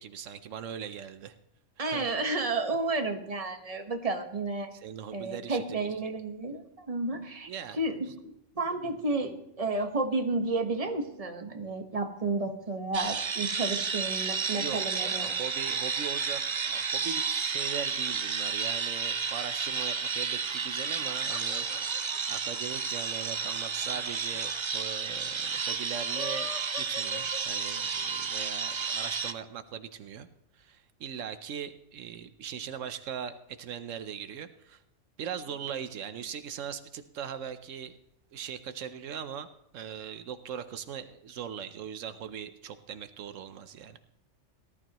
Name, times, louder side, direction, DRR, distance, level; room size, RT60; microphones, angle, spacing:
voice 1, 0.0-1.3 1.8-2.1 4.7-6.1 7.5-7.8 14.5-30.3 30.5-34.8 35.2-38.0 38.3-39.5 39.7-44.0, right 8 dB, 85° right, 11 dB, 1.1 m, -40 dB
voice 2, 1.8-4.7 5.1-8.1 8.5-15.3, right 3 dB, 30° right, 5 dB, 1.4 m, -31 dB
sound 1, 12.9-29.3, right 5 dB, 50° right, 0.3 m, -32 dB
sound 2, 20.9-24.3 24.6-24.7 24.9-25.0 25.9-28.1, left 5 dB, 65° left, 1.5 m, -43 dB
18.5 x 12.5 x 3.0 m, 0.82 s
omnidirectional pair, 1.3 m